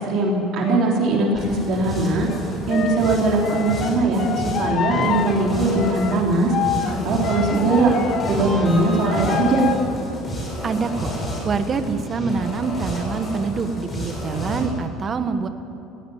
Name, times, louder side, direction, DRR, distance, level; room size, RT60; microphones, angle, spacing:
voice 1, 0.0-2.3 2.7-6.5 6.9-7.9 8.3-9.7, right 2 dB, 50° right, -2 dB, 3.9 m, -20 dB
sound 1, 0.6-1.0 2.3-8.5 8.7-9.7, left 9 dB, 40° left, 0.8 m, -28 dB
sound 2, 1.3-14.7, equal, 20° left, 5.9 m, -30 dB
voice 2, 10.6-11.1 11.4-15.5, right 5 dB, 25° right, 9 dB, 1.2 m, -25 dB
18.0 x 16.5 x 9.3 m, 3.0 s
cardioid pair, 160°, 0 cm